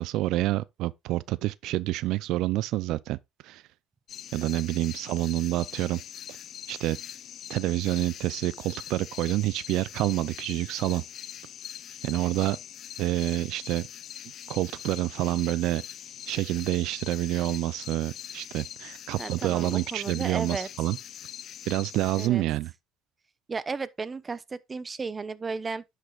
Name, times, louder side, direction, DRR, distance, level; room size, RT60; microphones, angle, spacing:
voice 1, 0.0-3.2 3.4-3.6 4.3-6.0 6.7-7.0 7.5-11.0 12.0-12.6 13.0-13.9 14.5-15.8 16.3-21.0 21.7-22.7, right 16 dB, 75° right, 0.4 m, -28 dB
sound 1, 4.1-22.3, left 10 dB, 55° left, 0.5 m, -42 dB
voice 2, 19.2-20.7 22.2-22.4 23.5-25.8, right 4 dB, 25° right, 0.8 m, -34 dB
10.5 x 8.1 x 2.4 m
cardioid pair, 115°, 0 cm